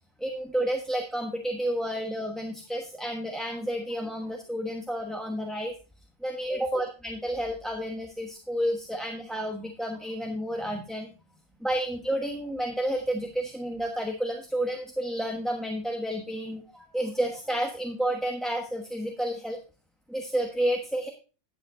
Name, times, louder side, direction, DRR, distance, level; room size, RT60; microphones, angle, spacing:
voice 1, 0.2-5.7 6.2-11.1 11.6-19.6 20.1-21.1, right 1 dB, ahead, 2 dB, 1.0 m, -30 dB
10.0 x 8.0 x 3.8 m, 0.33 s
omnidirectional pair, 1.2 m